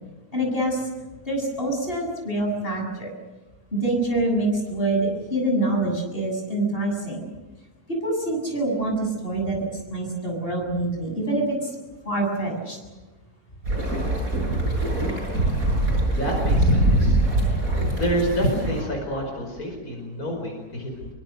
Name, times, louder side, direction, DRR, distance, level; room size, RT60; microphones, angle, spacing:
voice 1, 0.3-0.9 1.2-3.1 3.7-7.2 8.0-9.6 9.9-11.7 12.0-12.8, right 1 dB, 35° left, 1 dB, 7.9 m, -25 dB
sound 1, 13.6-18.8, right 1 dB, 65° right, 7.7 m, -23 dB
voice 2, 15.7-17.2 17.5-17.6 17.9-21.1, equal, 75° left, 1 dB, 5.7 m, -27 dB
27.5 x 24.0 x 6.8 m, 1.2 s
omnidirectional pair, 1.6 m